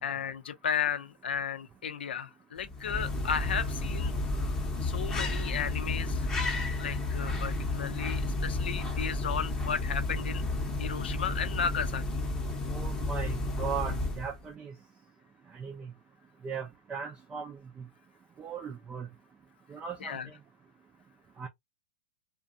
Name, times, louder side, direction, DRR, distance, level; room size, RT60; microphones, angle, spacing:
voice 1, 0.0-4.2 4.8-6.3 6.8-10.4 10.8-12.0 20.0-20.3, left 7 dB, 75° left, 0.6 m, -34 dB
sound 1, 2.6-14.4, left 2 dB, 10° left, 0.8 m, -32 dB
voice 2, 12.7-14.7 15.5-15.9 16.4-17.8 18.4-19.1 19.7-20.2 21.4-21.5, right 6 dB, 15° right, 0.4 m, -38 dB
2.5 x 2.2 x 2.5 m
hypercardioid pair, 130°, 6 cm